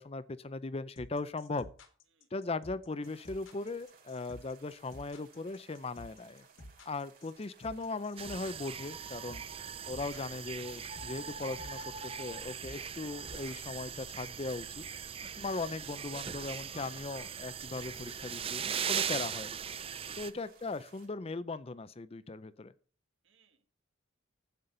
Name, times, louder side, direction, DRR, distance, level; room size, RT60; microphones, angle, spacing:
voice 1, 0.0-1.7 2.3-6.4 6.9-9.4 9.9-14.9 15.4-19.5 20.2-22.7, left 3 dB, 30° left, 0.5 m, -39 dB
sound 1, 1.0-14.1, left 1 dB, 65° left, 1.8 m, -51 dB
sound 2, 3.0-21.1, right 5 dB, 45° right, 3.2 m, -61 dB
sound 3, 8.2-20.3, right 7 dB, 25° right, 0.5 m, -40 dB
voice 2, 15.6-16.1 19.9-20.3 23.2-23.7, right 5 dB, 65° right, 1.7 m, -68 dB
11.0 x 8.3 x 3.8 m
head